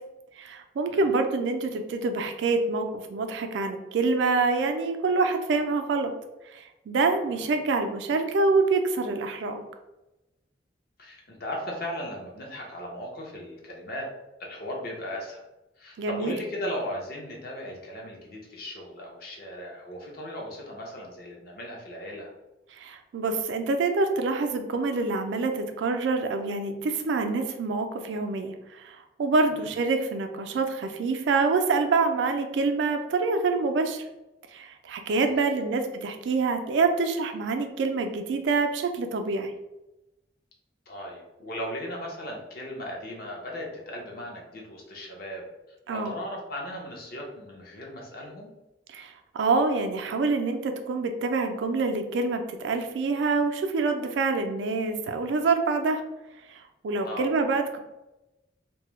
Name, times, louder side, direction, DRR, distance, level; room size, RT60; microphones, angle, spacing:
voice 1, 0.4-6.1 6.5-9.6 16.0-16.4 22.8-34.0 34.5-39.5 45.9-46.1 48.9-56.0 56.5-57.8, right 3 dB, 80° right, 6 dB, 0.3 m, -26 dB
voice 2, 11.0-14.1 14.4-15.4 15.8-22.3 29.5-29.7 35.2-35.3 35.6-35.7 40.9-45.4 45.9-48.5 57.0-57.3, left 1 dB, 55° left, -1 dB, 0.6 m, -37 dB
2.2 x 2.0 x 3.0 m, 0.97 s
head